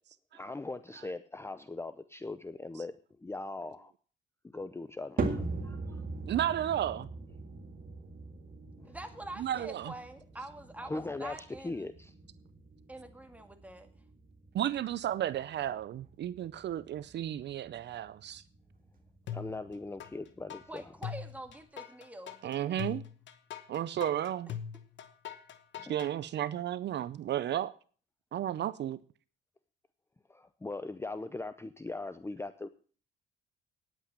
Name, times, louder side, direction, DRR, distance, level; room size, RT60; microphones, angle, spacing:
voice 1, 0.3-3.9 4.4-6.0 8.8-8.9 10.8-12.1 19.3-20.9 25.8-25.9 30.3-32.7, left 2 dB, 15° left, 0.6 m, -40 dB
sound 1, 5.2-21.6, right 3 dB, 45° right, 2.1 m, -42 dB
voice 2, 6.3-7.1 9.4-9.9 14.5-18.4 22.4-23.0 23.7-24.5 25.9-27.7 28.3-29.0, right 11 dB, 60° right, 0.6 m, -33 dB
voice 3, 8.9-11.9 12.9-13.9 20.7-23.0, right 1 dB, 5° right, 2.1 m, -46 dB
sound 2, 19.3-20.1 20.5-26.1, left 8 dB, 70° left, 1.1 m, -41 dB
10.0 x 8.1 x 7.4 m
cardioid pair, 90°, 20 cm